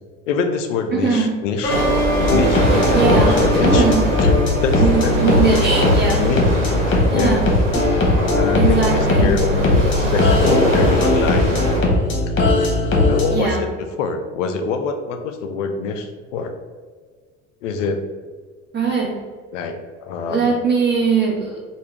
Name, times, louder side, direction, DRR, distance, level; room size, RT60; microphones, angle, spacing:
voice 1, 0.3-1.8 2.3-3.9 4.2-4.3 4.6-5.7 6.1-7.4 8.3-11.8 13.1-13.7 14.0-16.5 17.6-18.0 19.5-20.5, left 5 dB, 75° left, 6 dB, 0.5 m, -25 dB
voice 2, 0.9-1.3 2.9-3.3 3.6-4.0 4.8-6.2 7.1-7.4 7.7-7.8 8.6-9.3 13.3-13.6 18.7-19.1 20.3-21.6, right 5 dB, 30° right, -2 dB, 1.1 m, -20 dB
sound 1, 1.6-7.1, right 1 dB, 10° left, 1.3 m, -27 dB
sound 2, 1.7-11.8, equal, 85° right, 1.0 m, -22 dB
sound 3, 2.2-13.4, left 2 dB, 35° left, 0.9 m, -19 dB
3.4 x 2.2 x 3.3 m, 1.5 s
hypercardioid pair, 70°, 37 cm